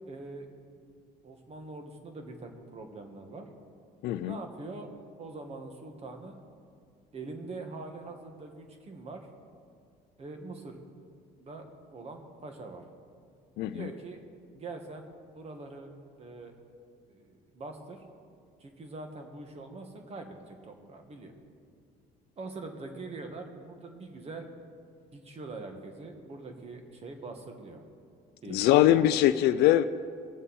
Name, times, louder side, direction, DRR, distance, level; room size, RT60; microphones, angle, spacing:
voice 1, 0.1-0.5 1.2-3.5 4.2-4.9 5.2-6.4 7.1-9.3 10.2-10.8 11.4-11.6 11.9-12.8 13.7-14.2 14.5-15.9 16.2-16.5 17.1-18.0 18.6-21.3 22.4-24.5 25.1-27.8 28.4-29.2, right 3 dB, 35° right, 4 dB, 1.7 m, -43 dB
voice 2, 4.0-4.4 13.6-13.9 28.5-29.8, left 13 dB, 80° left, 11 dB, 0.4 m, -22 dB
20.5 x 7.2 x 4.3 m, 2.2 s
cardioid pair, 110°, 17 cm